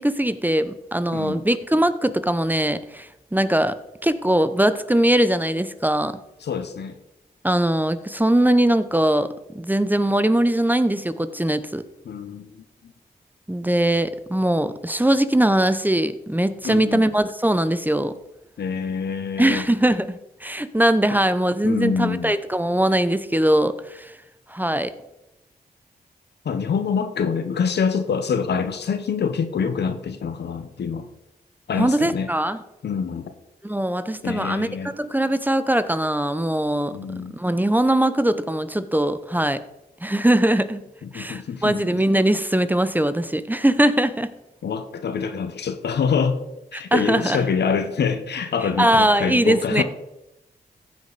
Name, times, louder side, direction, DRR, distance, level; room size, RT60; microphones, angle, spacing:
voice 1, 0.0-3.8 4.0-6.2 7.4-11.8 13.5-18.1 19.4-24.1 24.5-24.9 31.8-32.6 33.6-34.7 34.9-36.9 37.3-39.6 40.0-40.8 41.1-44.3 46.7-47.4 48.8-49.8, right 1 dB, 10° right, 12 dB, 0.7 m, -21 dB
voice 2, 1.1-1.4 6.4-7.0 12.0-12.9 16.6-17.0 18.6-19.6 21.6-22.3 26.4-31.1 31.7-32.3 32.8-33.3 34.2-34.9 36.9-37.4 41.0-42.0 44.6-46.4 46.7-49.8, left 6 dB, 75° left, 10 dB, 0.9 m, -26 dB
15.0 x 5.1 x 4.0 m, 0.90 s
cardioid pair, 45°, 18 cm